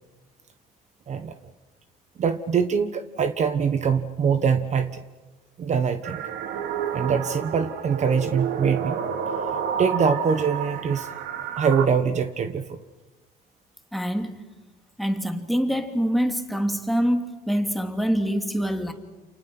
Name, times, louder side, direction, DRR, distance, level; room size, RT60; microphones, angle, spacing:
voice 1, 2.2-5.0 5.6-6.2 6.9-9.0 9.8-11.1 11.5-12.8, right 6 dB, 45° right, 9 dB, 1.3 m, -23 dB
sound 1, 6.0-11.9, right 8 dB, 80° right, 1.8 m, -30 dB
voice 2, 13.9-14.4 15.0-18.9, equal, ahead, 5 dB, 2.7 m, -25 dB
29.5 x 28.0 x 6.1 m, 1.2 s
cardioid pair, 110°, 17 cm